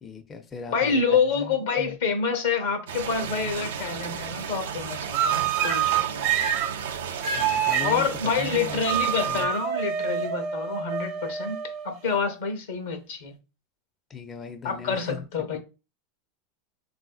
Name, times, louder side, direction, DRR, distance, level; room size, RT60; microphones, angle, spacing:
voice 1, 0.0-2.0 7.3-8.1 8.4-8.8 9.3-9.5 14.1-15.3, left 4 dB, 25° left, 0.4 m, -39 dB
voice 2, 0.7-6.5 7.8-13.3 14.6-15.6, left 5 dB, 80° left, 0.7 m, -27 dB
sound 1, 2.9-9.5, right 7 dB, 85° right, 0.3 m, -34 dB
sound 2, 5.1-6.7 7.2-7.9 8.9-12.1, right 8 dB, 65° right, 0.8 m, -26 dB
3.5 x 2.5 x 2.3 m
hypercardioid pair, 110°, 0 cm